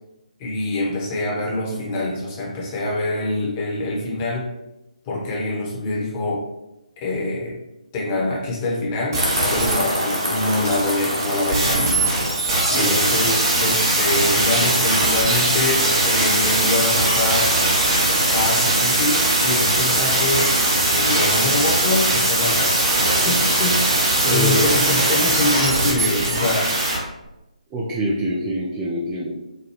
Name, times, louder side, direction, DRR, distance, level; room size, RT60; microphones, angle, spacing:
voice 1, 0.4-4.5 5.0-6.4 7.0-7.6 7.9-11.9 12.7-17.5 18.3-20.6 20.9-22.9 23.2-26.7, left 2 dB, 20° left, -4 dB, 0.9 m, -25 dB
sound 1, 9.1-27.0 27.3-27.4, right 2 dB, 30° right, 0.9 m, -20 dB
sound 2, 9.2-13.6, equal, 80° right, 1.2 m, -27 dB
voice 2, 24.2-24.7 27.7-29.3, right 1 dB, 15° right, -6 dB, 0.4 m, -25 dB
4.6 x 2.2 x 3.0 m, 0.94 s
figure-of-eight pair, 145°, 4 cm